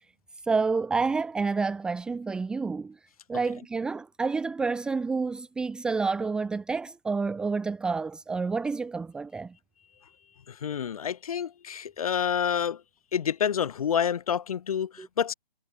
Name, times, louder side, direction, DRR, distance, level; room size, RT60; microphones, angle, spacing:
voice 1, 0.4-3.0 3.3-9.5 15.0-15.1, right 4 dB, 5° right, 2.2 m, -29 dB
voice 2, 10.5-12.8 13.1-15.3, left 8 dB, 35° left, 7.4 m, -28 dB
hypercardioid pair, 170°, 31 cm